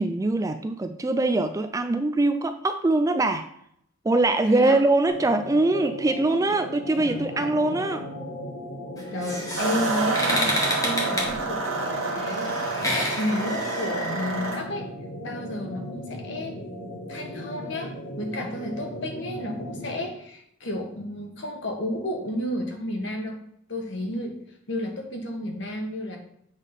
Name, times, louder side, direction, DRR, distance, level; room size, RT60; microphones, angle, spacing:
voice 1, 0.0-3.5 4.0-8.1, right 2 dB, 15° right, 8 dB, 0.3 m, -23 dB
voice 2, 4.5-4.8 7.0-7.6 9.1-14.9 15.2-16.6 17.1-23.4 23.7-26.2, left 1 dB, 60° left, 3 dB, 1.3 m, -32 dB
sound 1, 5.1-20.2, left 1 dB, 80° left, 1.6 m, -37 dB
sound 2, 9.0-14.6, left 1 dB, 15° left, 1.4 m, -30 dB
sound 3, 9.6-14.6, right 4 dB, 75° right, 1.3 m, -29 dB
8.1 x 3.7 x 5.4 m, 0.71 s
head